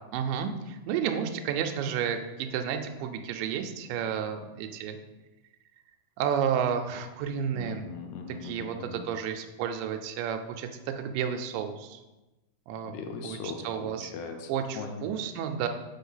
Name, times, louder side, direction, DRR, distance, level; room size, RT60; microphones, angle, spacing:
voice 1, 0.1-5.0 6.2-7.9 8.3-12.0 12.7-12.9 13.2-14.1 14.5-15.7, right 8 dB, 80° right, 6 dB, 2.2 m, -31 dB
voice 2, 7.5-9.1 12.8-15.1, left 5 dB, 80° left, 5 dB, 2.0 m, -40 dB
4.6 x 3.9 x 5.6 m, 1.1 s
omnidirectional pair, 4.1 m